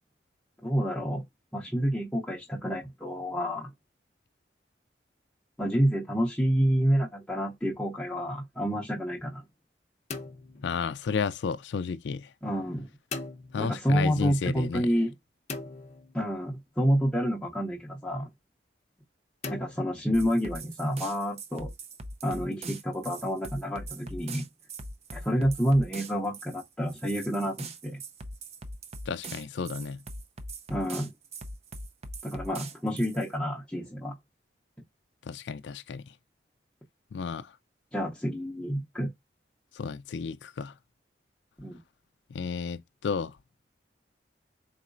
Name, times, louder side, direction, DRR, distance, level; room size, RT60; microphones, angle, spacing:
voice 1, 0.6-1.2 1.5-3.7 5.6-9.4 12.4-12.9 13.6-15.1 16.1-18.3 19.5-21.7 22.2-24.4 25.1-28.0 30.7-31.1 32.2-34.1 37.9-39.1 41.6-41.8, equal, 5° left, 0.7 m, -28 dB
sound 1, 10.1-11.4 13.1-14.1 15.5-16.7 19.4-20.6, left 4 dB, 40° left, 0.7 m, -41 dB
voice 2, 10.6-12.3 13.5-14.9 29.1-30.0 35.3-36.0 37.1-37.5 39.7-40.7 42.3-43.3, left 5 dB, 80° left, 0.4 m, -32 dB
sound 2, 20.1-33.3, right 2 dB, 35° right, 0.5 m, -42 dB
4.2 x 3.9 x 2.5 m
head